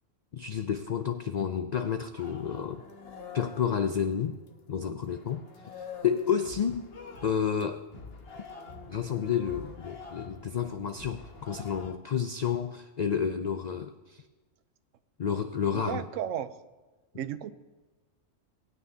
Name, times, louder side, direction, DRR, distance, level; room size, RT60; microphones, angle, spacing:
voice 1, 0.3-2.8 3.3-4.4 4.7-5.4 6.0-6.9 7.2-7.8 8.9-14.2 15.2-16.1, left 7 dB, 75° left, 8 dB, 0.4 m, -30 dB
sound 1, 2.2-4.7 5.1-11.9, left 4 dB, 55° left, 1.2 m, -46 dB
voice 2, 15.7-16.5 17.1-17.5, right 10 dB, 80° right, 12 dB, 0.9 m, -34 dB
19.5 x 9.3 x 2.8 m, 1.2 s
omnidirectional pair, 1.3 m